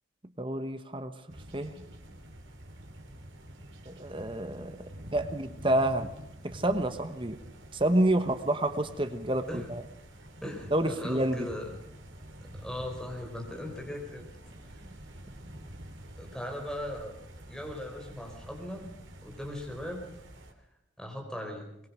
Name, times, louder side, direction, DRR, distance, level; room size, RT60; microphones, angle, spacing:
voice 1, 0.4-1.1 1.5-1.7 3.9-6.1 6.4-7.4 7.7-9.8 10.7-11.5, right 1 dB, 25° right, 9 dB, 1.1 m, -29 dB
sound 1, 1.3-20.5, right 1 dB, 75° right, 3.3 m, -48 dB
voice 2, 10.4-11.7 12.4-14.3 16.2-17.1 17.5-18.8 19.2-20.0 21.0-21.7, left 1 dB, 5° left, 1 dB, 4.4 m, -38 dB
23.0 x 22.0 x 6.2 m, 0.81 s
head